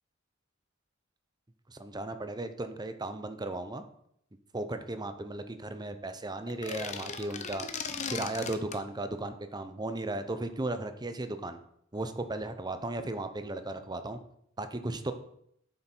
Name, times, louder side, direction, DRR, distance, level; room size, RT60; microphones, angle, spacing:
voice 1, 1.7-3.8 4.5-7.7 8.1-11.6 11.9-14.2 14.6-15.1, right 2 dB, 20° right, 9 dB, 0.8 m, -36 dB
sound 1, 6.5-8.8, left 5 dB, 35° left, 0.8 m, -38 dB
9.4 x 7.5 x 4.6 m, 0.71 s
head